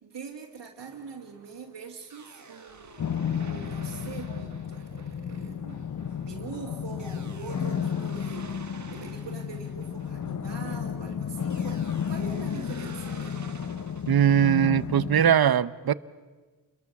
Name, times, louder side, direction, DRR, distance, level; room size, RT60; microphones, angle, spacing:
voice 1, 0.0-13.4, right 5 dB, 80° right, -2 dB, 2.2 m, -43 dB
sound 1, 0.8-10.9 11.5-15.2, right 4 dB, 45° right, 1.8 m, -49 dB
Subway metro underground, 2.7-7.8, left 1 dB, 65° left, 6.7 m, -55 dB
sound 2, 3.0-15.3, left 7 dB, 45° left, 0.8 m, -33 dB
voice 2, 14.1-15.9, right 9 dB, 60° right, 17 dB, 0.8 m, -21 dB
30.0 x 22.0 x 7.2 m, 1.4 s
wide cardioid pair, 90°, 41 cm